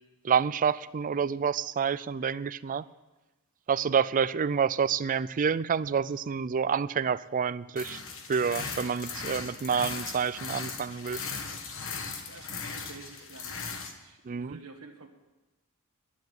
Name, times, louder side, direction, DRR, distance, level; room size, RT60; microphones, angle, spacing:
voice 1, 0.2-2.9 3.7-8.0 8.3-11.2 14.3-14.6, right 6 dB, 35° right, 17 dB, 0.4 m, -28 dB
sound 1, 7.8-13.9, left 5 dB, 60° left, 1.4 m, -38 dB
voice 2, 12.1-13.6 14.0-15.1, right 3 dB, 80° right, 2 dB, 1.3 m, -49 dB
10.5 x 9.9 x 9.1 m, 1.1 s
head